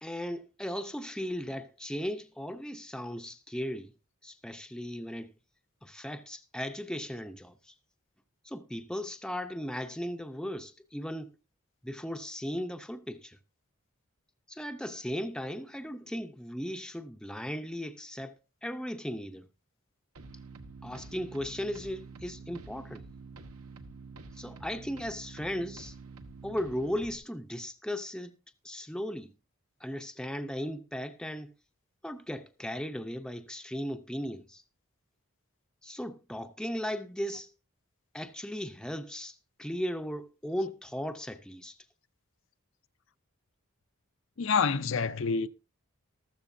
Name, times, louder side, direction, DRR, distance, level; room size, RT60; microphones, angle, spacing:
voice 1, 0.0-3.9 4.2-5.3 5.8-7.7 8.4-11.3 11.8-13.4 14.5-18.4 18.6-19.5 20.8-23.0 24.3-26.0 26.4-28.4 28.6-29.3 29.8-31.5 32.0-34.6 35.8-37.5 38.1-41.8, equal, 5° left, 0.6 m, -37 dB
sound 1, 20.2-27.2, right 3 dB, 80° right, 1.5 m, -47 dB
voice 2, 44.4-45.5, left 5 dB, 60° left, 0.6 m, -27 dB
14.0 x 13.5 x 2.6 m
head